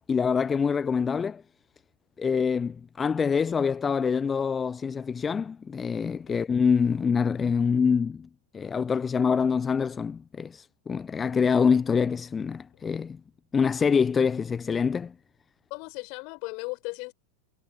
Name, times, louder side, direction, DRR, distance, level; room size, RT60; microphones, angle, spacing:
voice 1, 0.0-1.4 2.2-8.3 8.5-13.2 13.5-15.1, left 6 dB, 20° left, 0.9 m, -25 dB
voice 2, 15.7-17.1, left 33 dB, 45° left, 4.9 m, -36 dB
figure-of-eight pair, 90°, 0 cm